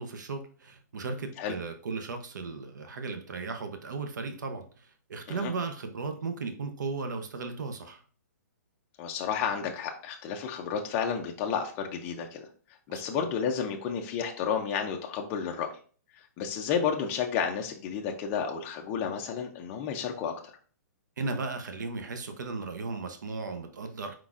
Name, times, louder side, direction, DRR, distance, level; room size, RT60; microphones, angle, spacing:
voice 1, 0.0-8.0 12.9-13.2 21.2-24.1, right 4 dB, 85° right, 7 dB, 0.7 m, -36 dB
voice 2, 9.0-12.5 12.9-15.7 16.1-20.3, left 7 dB, 15° left, 2 dB, 0.3 m, -31 dB
4.5 x 4.0 x 2.4 m, 0.42 s
hypercardioid pair, 170°, 10 cm